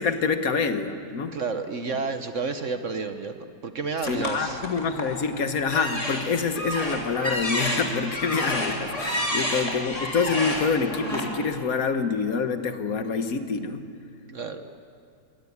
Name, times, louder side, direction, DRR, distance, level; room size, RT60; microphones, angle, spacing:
voice 1, 0.0-1.4 1.9-2.0 4.0-13.9, left 5 dB, 50° left, 8 dB, 1.5 m, -26 dB
voice 2, 1.3-4.8 9.3-9.4 14.2-14.6, right 4 dB, 50° right, 8 dB, 1.0 m, -31 dB
sound 1, 4.0-5.2 5.7-11.2, left 1 dB, 15° left, 3.2 m, -29 dB
22.0 x 17.0 x 9.5 m, 2.3 s
omnidirectional pair, 2.1 m